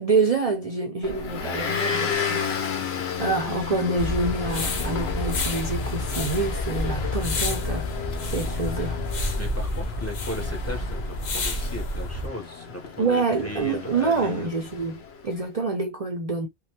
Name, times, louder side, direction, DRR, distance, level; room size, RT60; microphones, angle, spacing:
voice 1, 0.0-2.7 3.2-7.9 8.2-9.1 13.0-16.5, right 3 dB, 45° right, 0.6 m, -27 dB
Motor vehicle (road) / Engine, 1.0-15.2, left 6 dB, 80° left, 1.0 m, -33 dB
sound 1, 4.0-12.3, left 2 dB, 50° left, 0.8 m, -29 dB
voice 2, 9.4-14.5, left 1 dB, 15° left, 0.8 m, -37 dB
3.2 x 2.2 x 2.8 m
omnidirectional pair, 1.0 m